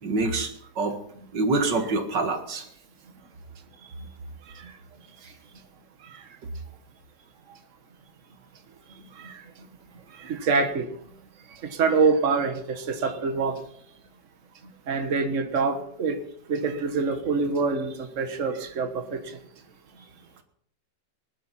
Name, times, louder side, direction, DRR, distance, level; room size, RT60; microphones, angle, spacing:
voice 1, 0.0-1.0 1.3-2.7, right 3 dB, 75° right, 6 dB, 2.4 m, -26 dB
voice 2, 10.3-10.9 11.7-13.6 14.9-16.2 16.5-19.2, right 4 dB, 45° right, 7 dB, 1.6 m, -25 dB
19.5 x 12.0 x 4.2 m, 0.63 s
omnidirectional pair, 1.9 m